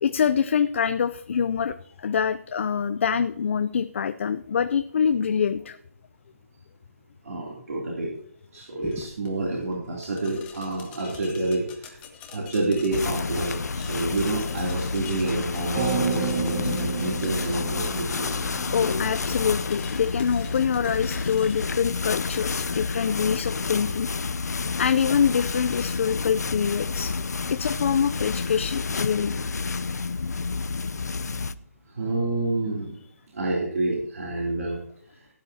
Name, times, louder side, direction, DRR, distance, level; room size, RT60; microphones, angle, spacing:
voice 1, 0.0-5.8 18.7-24.1 24.8-27.1 27.5-29.3, left 7 dB, 50° left, 10 dB, 0.6 m, -25 dB
voice 2, 7.2-8.1 8.5-12.0 12.3-18.4 28.0-28.1 31.9-33.0 33.3-34.8 35.1-35.3, right 2 dB, 70° right, -2 dB, 3.0 m, -28 dB
sound 1, 8.8-21.5, left 7 dB, 15° left, 1.3 m, -45 dB
sound 2, 12.9-31.5, left 4 dB, 85° left, 0.7 m, -29 dB
sound 3, 15.7-19.9, right 5 dB, 35° right, 2.3 m, -31 dB
17.5 x 9.7 x 2.8 m, 0.62 s
hypercardioid pair, 160°, 9 cm